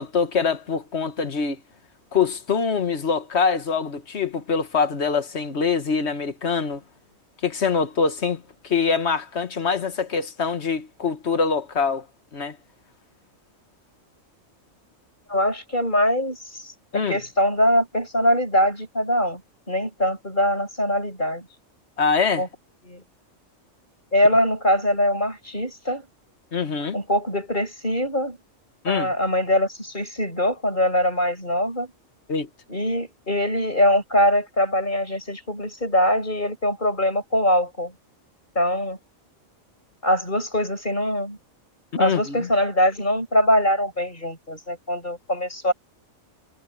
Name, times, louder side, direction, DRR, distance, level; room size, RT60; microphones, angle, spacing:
voice 1, 0.0-1.6 2.1-6.8 7.4-12.1 12.3-12.6 16.9-17.2 22.0-22.4 26.5-27.0 28.8-29.1 32.3-32.5 41.9-42.5, left 5 dB, 55° left, 1.7 m, -24 dB
voice 2, 15.3-19.4 19.7-21.5 22.4-22.5 22.8-23.0 24.1-26.1 26.9-28.4 28.9-31.9 32.7-37.9 38.6-39.0 40.0-41.4 42.0-45.7, left 1 dB, 35° left, 7.1 m, -22 dB
omnidirectional pair, 1.4 m